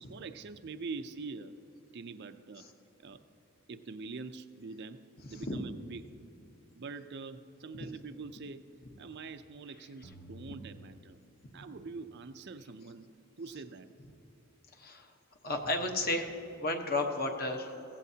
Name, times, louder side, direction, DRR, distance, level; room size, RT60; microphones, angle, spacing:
voice 1, 0.0-1.6 1.9-2.7 3.0-3.2 3.7-6.1 6.7-8.7 9.0-11.2 11.5-13.1 13.4-13.9, right 4 dB, 50° right, 9 dB, 0.5 m, -44 dB
sound 1, 10.0-11.8, right 2 dB, 70° left, 1.8 m, -53 dB
voice 2, 14.7-15.1 15.4-17.8, left 2 dB, 40° left, 4 dB, 1.1 m, -33 dB
16.0 x 15.5 x 2.8 m, 2.8 s
head